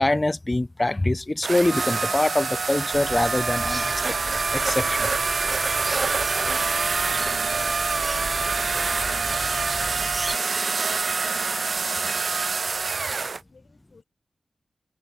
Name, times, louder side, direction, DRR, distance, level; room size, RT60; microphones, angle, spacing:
voice 1, 0.0-3.9 4.5-5.1, left 2 dB, 20° left, 0.7 m, -24 dB
sound 1, 1.4-13.4, right 4 dB, 55° right, 0.3 m, -25 dB
sound 2, 2.9-10.4, right 1 dB, 10° right, 0.8 m, -37 dB
voice 2, 6.3-12.4 12.8-14.0, left 4 dB, 60° left, 6.3 m, -52 dB
wide cardioid pair, 115°, 0 cm